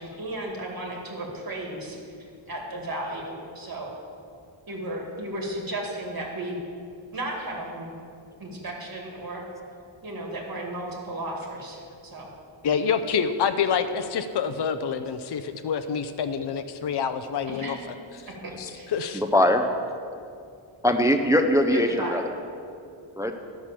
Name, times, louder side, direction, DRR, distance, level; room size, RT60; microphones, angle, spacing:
voice 1, 0.0-2.0 2.5-3.9 4.7-6.6 7.1-7.9 8.4-9.4 10.0-12.3 17.5-17.8 18.3-18.9 21.7-22.3, right 1 dB, 45° right, -1 dB, 2.2 m, -34 dB
voice 2, 12.6-17.8 18.6-19.2, left 6 dB, 55° left, 9 dB, 0.6 m, -27 dB
voice 3, 19.1-19.7 20.8-22.2 23.2-23.3, left 1 dB, 5° right, 5 dB, 0.4 m, -21 dB
11.5 x 6.2 x 7.4 m, 2.4 s
wide cardioid pair, 150°, 49 cm